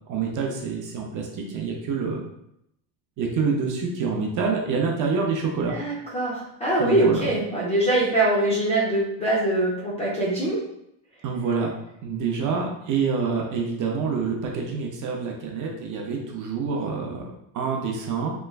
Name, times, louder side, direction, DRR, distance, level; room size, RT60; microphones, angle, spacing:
voice 1, 0.1-2.2 3.2-5.7 6.8-7.3 11.2-11.7 12.0-18.3, right 5 dB, 40° right, 0 dB, 0.6 m, -27 dB
voice 2, 5.7-10.6, right 1 dB, 15° left, -7 dB, 0.4 m, -23 dB
3.3 x 3.0 x 2.3 m, 0.78 s
cardioid pair, 160°, 49 cm